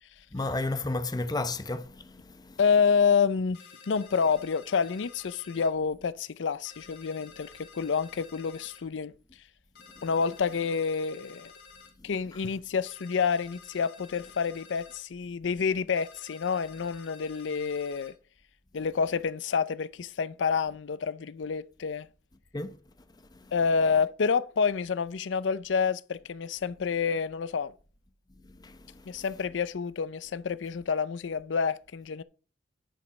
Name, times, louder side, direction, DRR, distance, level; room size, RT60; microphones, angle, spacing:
voice 1, 0.3-2.6 12.0-12.1 22.5-22.8 23.3-23.5 28.4-29.2, left 2 dB, 20° left, 0.8 m, -34 dB
voice 2, 2.6-3.6 3.9-9.1 10.0-11.5 12.0-18.1 18.7-22.1 23.5-27.7 29.1-32.2, left 5 dB, 90° left, 0.5 m, -28 dB
sound 1, 3.5-5.7 6.6-8.8 9.7-11.9 12.9-15.0 16.0-18.1, left 5 dB, 60° left, 2.8 m, -52 dB
10.0 x 5.2 x 5.9 m
head